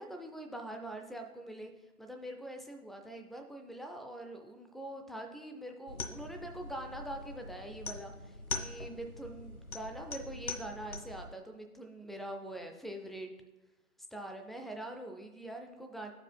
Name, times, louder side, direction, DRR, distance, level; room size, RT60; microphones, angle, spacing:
voice 1, 0.0-1.7 2.0-13.3 14.1-16.1, right 1 dB, ahead, 5 dB, 0.4 m, -44 dB
sound 1, 5.9-11.3, left 2 dB, 70° left, 0.8 m, -42 dB
14.0 x 4.8 x 2.2 m, 1.1 s
figure-of-eight pair, 170°, 44 cm